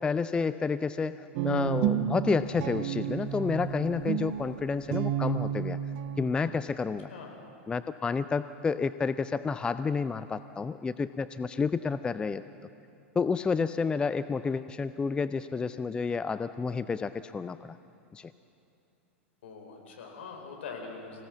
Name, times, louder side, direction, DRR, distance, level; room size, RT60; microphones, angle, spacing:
voice 1, 0.0-5.8 6.2-7.1 7.7-12.4 13.2-17.8 18.1-18.3, left 5 dB, 15° left, 13 dB, 0.4 m, -30 dB
Guitar, 1.3-6.5, right 10 dB, 50° right, 0.9 m, -31 dB
voice 2, 7.1-7.4 19.4-21.3, left 5 dB, 65° left, 1 dB, 4.4 m, -43 dB
25.0 x 17.0 x 7.3 m, 2.8 s
figure-of-eight pair, 95°, 7 cm